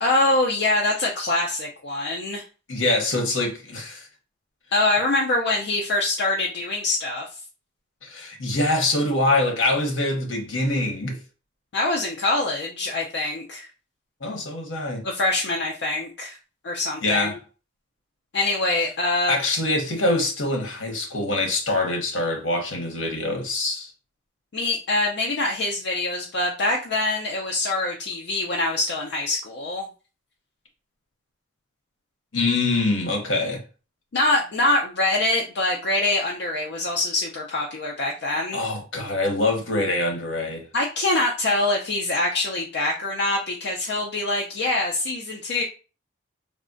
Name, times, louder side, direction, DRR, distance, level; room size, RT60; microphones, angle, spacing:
voice 1, 0.0-2.4 4.7-7.2 11.7-13.7 15.0-16.4 16.6-17.3 18.3-19.4 24.5-29.8 34.1-38.6 40.7-45.6, left 2 dB, 60° left, 0.4 m, -24 dB
voice 2, 2.7-4.1 8.0-11.2 14.2-15.0 17.0-17.4 19.3-23.9 32.3-33.6 38.5-40.6, left 2 dB, 75° left, 0.9 m, -24 dB
3.5 x 2.1 x 2.5 m
head